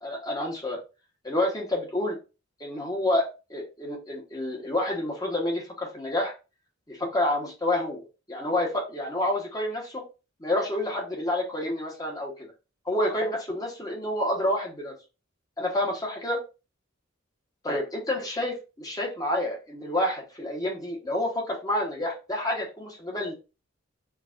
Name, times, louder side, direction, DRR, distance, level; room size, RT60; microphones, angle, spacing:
voice 1, 0.0-0.8 1.2-2.2 2.6-6.3 6.9-10.0 10.4-12.5 12.9-14.9 15.6-16.4 17.6-17.8 18.1-23.3, left 1 dB, 20° left, -1 dB, 0.9 m, -29 dB
4.6 x 2.3 x 2.3 m, 0.30 s
head